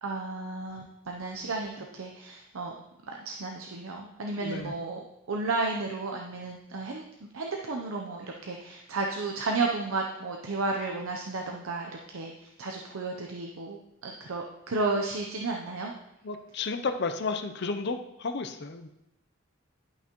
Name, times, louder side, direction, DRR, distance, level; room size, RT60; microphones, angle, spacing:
voice 1, 0.0-2.7 3.1-7.0 7.3-15.9, right 3 dB, 80° right, 1 dB, 0.7 m, -33 dB
voice 2, 4.4-4.7 16.2-18.9, left 4 dB, 50° left, 7 dB, 0.5 m, -32 dB
11.0 x 5.8 x 3.0 m, 0.87 s
head